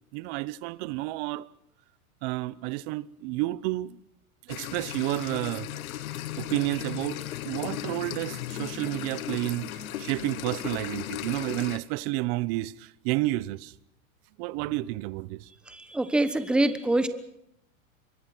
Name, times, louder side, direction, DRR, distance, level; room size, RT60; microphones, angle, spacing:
voice 1, 0.1-1.5 2.2-4.0 4.4-5.8 6.4-13.7 14.4-15.5, right 19 dB, 45° right, 0.9 m, -31 dB
tunnel stream, 4.5-11.8, left 12 dB, 85° left, 1.6 m, -36 dB
voice 2, 15.7-17.1, right 2 dB, ahead, 1.1 m, -25 dB
25.5 x 23.0 x 6.1 m
supercardioid pair, 145°, 41 cm